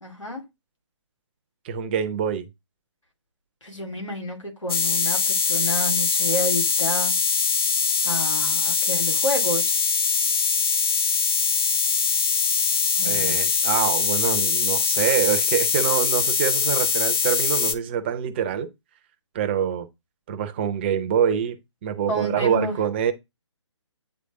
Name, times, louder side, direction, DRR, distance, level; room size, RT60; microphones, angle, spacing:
voice 1, 0.0-0.4 3.6-7.1 8.0-9.7 13.0-13.4 22.1-22.8, equal, 90° left, 2.6 m, -30 dB
voice 2, 1.6-2.5 13.0-18.7 19.3-19.9 20.3-23.1, right 9 dB, 20° right, 0.7 m, -25 dB
sound 1, 4.7-17.7, left 5 dB, 50° left, 0.8 m, -22 dB
8.8 x 3.4 x 3.7 m
figure-of-eight pair, 140°, 16 cm